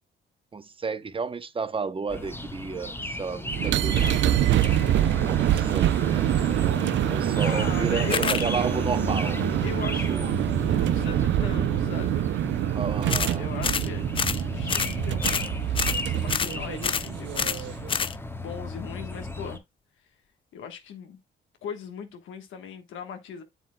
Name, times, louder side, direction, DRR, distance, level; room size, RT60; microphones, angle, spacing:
voice 1, 0.5-4.4 5.2-6.3 7.1-9.5 10.1-10.4 12.7-13.5, right 5 dB, 25° right, 0.8 m, -32 dB
sound 1, 2.1-19.6, left 2 dB, 10° left, 1.2 m, -34 dB
sound 2, 3.5-17.9, right 12 dB, 70° right, 0.5 m, -25 dB
voice 2, 7.4-8.6 9.6-10.1 10.7-12.3 13.3-14.0 14.5-17.7 18.4-19.6 20.5-21.2 21.6-23.4, left 6 dB, 75° left, 1.3 m, -39 dB
sound 3, 8.1-8.4 13.1-13.4 13.6-13.9 14.2-14.4 14.7-14.9 15.2-15.5 15.7-16.0 16.3-16.5 16.8-17.1 17.4-17.6 17.9-18.2, left 6 dB, 25° left, 0.4 m, -27 dB
7.7 x 7.5 x 2.2 m
cardioid pair, 90°, 20 cm